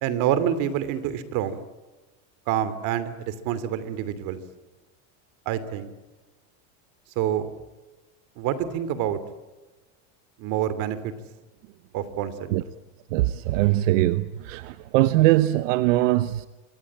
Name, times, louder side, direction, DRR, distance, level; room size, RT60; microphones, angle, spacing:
voice 1, 0.0-1.6 2.5-4.4 5.5-5.9 7.2-7.5 8.4-9.2 10.4-11.1 11.9-12.5, right 10 dB, 55° right, 2.8 m, -27 dB
voice 2, 13.1-16.5, right 16 dB, 80° right, 1.0 m, -21 dB
26.5 x 22.5 x 8.7 m
cardioid pair, 155°, 38 cm